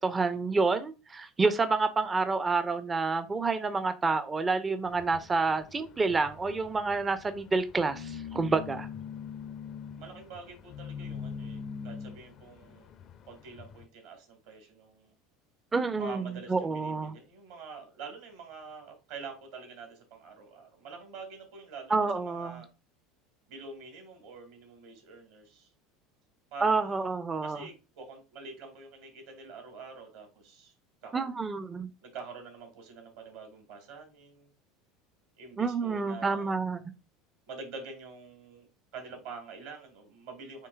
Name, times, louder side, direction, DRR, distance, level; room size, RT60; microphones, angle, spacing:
voice 1, 0.0-8.9 15.7-17.1 21.9-22.6 26.6-27.6 31.1-31.9 35.6-36.8, right 4 dB, 20° right, 0.5 m, -28 dB
sound 1, 4.9-13.9, left 6 dB, 45° left, 0.5 m, -43 dB
voice 2, 10.0-12.9 13.3-15.1 16.0-22.7 23.5-25.7 26.5-27.0 27.4-30.7 31.0-31.3 32.0-34.5 35.4-36.5 37.5-38.7 38.9-40.7, right 4 dB, 60° right, 1.7 m, -46 dB
7.5 x 3.0 x 2.3 m
figure-of-eight pair, 70°, 0 cm